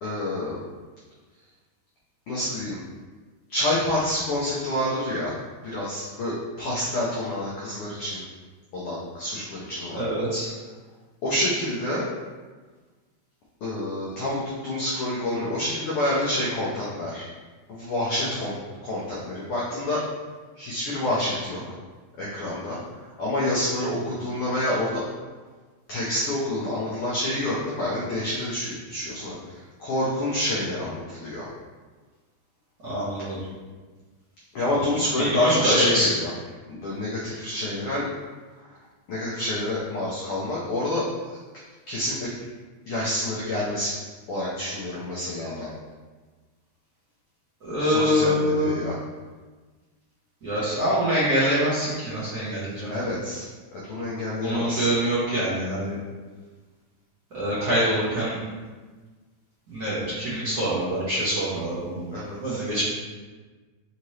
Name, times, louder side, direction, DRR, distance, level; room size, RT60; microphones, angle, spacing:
voice 1, 0.0-0.6 2.3-2.8 3.5-5.4 5.6-8.2 8.7-10.0 11.2-12.1 13.6-17.2 17.7-20.0 20.6-21.6 22.2-22.8 23.2-25.0 25.9-31.5 33.2-33.3 34.5-36.3 36.7-38.1 38.5-38.8 39.1-41.4 41.9-42.3 42.9-43.9 44.3-45.7 47.8-49.0 52.9-53.4 53.8-55.0 62.1-62.6, left 1 dB, 85° left, -6 dB, 1.2 m, -28 dB
voice 2, 9.9-10.5 32.8-33.4 35.2-36.1 47.6-48.7 50.4-52.9 54.4-55.9 57.3-58.4 59.7-62.1 62.4-62.8, equal, 70° right, -10 dB, 0.9 m, -25 dB
5.0 x 2.8 x 3.1 m, 1.3 s
omnidirectional pair, 3.4 m